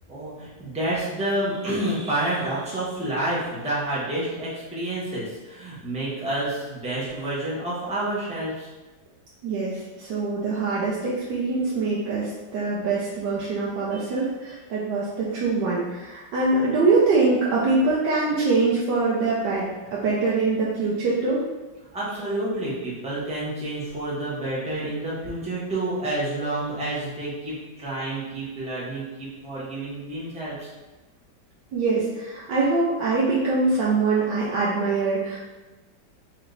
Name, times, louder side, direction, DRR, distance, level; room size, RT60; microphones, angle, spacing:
voice 1, 0.1-8.7 13.9-14.0 21.9-30.7, right 1 dB, 5° right, -8 dB, 0.7 m, -29 dB
voice 2, 9.4-21.4 31.7-35.4, right 3 dB, 85° right, -6 dB, 1.3 m, -23 dB
3.2 x 3.1 x 3.8 m, 1.2 s
omnidirectional pair, 1.9 m